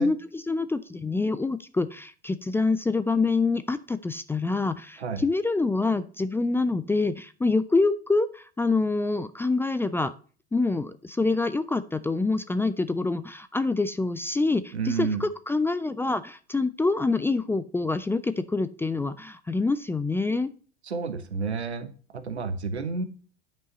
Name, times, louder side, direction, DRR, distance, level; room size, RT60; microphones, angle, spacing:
voice 1, 0.0-10.1 10.5-20.5, left 3 dB, 5° left, 14 dB, 0.4 m, -26 dB
voice 2, 14.7-15.2 20.9-23.1, right 5 dB, 90° right, 11 dB, 1.1 m, -30 dB
9.3 x 5.3 x 4.1 m, 0.39 s
hypercardioid pair, 85°, 32 cm